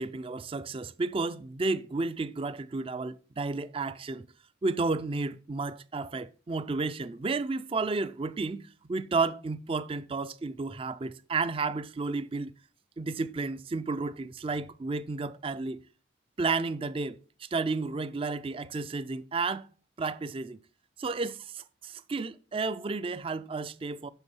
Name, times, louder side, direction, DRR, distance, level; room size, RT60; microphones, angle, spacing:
voice 1, 0.0-4.3 4.6-12.5 13.0-15.8 16.4-19.7 20.0-20.6 21.0-24.1, right 3 dB, 25° right, 0.4 m, -32 dB
8.1 x 6.1 x 5.3 m
head